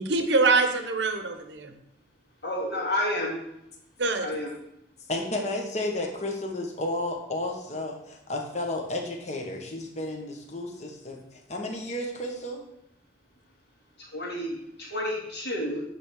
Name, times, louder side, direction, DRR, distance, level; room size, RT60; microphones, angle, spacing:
voice 1, 0.0-1.7 4.0-4.3, right 3 dB, 65° right, 7 dB, 0.9 m, -24 dB
voice 2, 2.4-3.4 4.2-4.5 14.0-15.8, left 1 dB, 55° left, -4 dB, 2.7 m, -30 dB
voice 3, 5.1-12.6, left 1 dB, 35° left, 2 dB, 1.2 m, -32 dB
9.6 x 3.5 x 6.0 m, 0.80 s
head